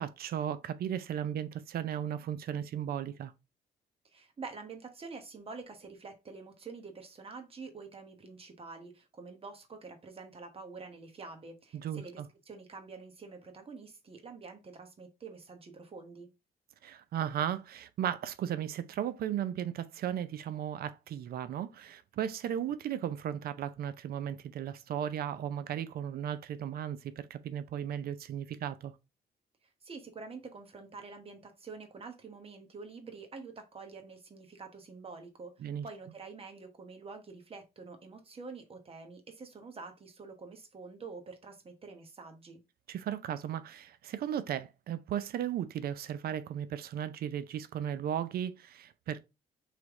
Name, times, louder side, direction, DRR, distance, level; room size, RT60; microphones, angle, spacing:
voice 1, 0.0-3.3 11.7-12.3 16.8-28.9 35.6-35.9 42.9-49.2, right 10 dB, 65° right, 0.5 m, -36 dB
voice 2, 4.0-16.3 29.8-42.6, right 4 dB, 35° right, 1.1 m, -47 dB
3.3 x 3.0 x 3.6 m
supercardioid pair, 75°, 17 cm